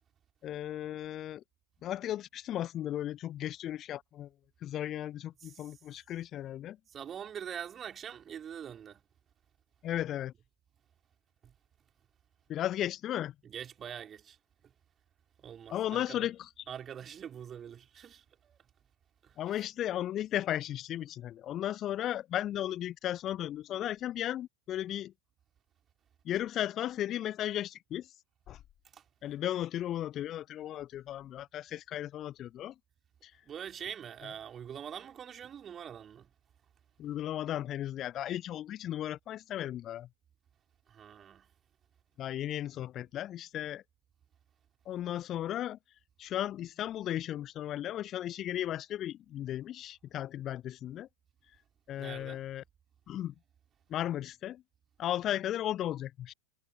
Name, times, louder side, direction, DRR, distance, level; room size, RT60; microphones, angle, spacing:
voice 1, 0.4-1.4 1.8-4.3 4.6-6.8 9.8-10.3 12.5-13.3 15.7-16.5 19.4-25.1 26.3-28.1 28.5-28.6 29.2-32.7 33.2-33.3 37.0-40.1 42.2-43.8 44.9-45.8 46.2-51.1 51.9-52.6 53.1-53.3 53.9-54.6 55.0-56.3, left 12 dB, 30° left, 0.3 m, -35 dB
voice 2, 6.9-9.0 11.4-11.5 13.4-14.4 15.4-16.3 16.7-18.6 19.2-19.6 28.9-29.0 33.4-36.3 40.9-41.5 52.0-52.4, right 8 dB, 25° right, 3.6 m, -44 dB
figure-of-eight pair, 90°, 0 cm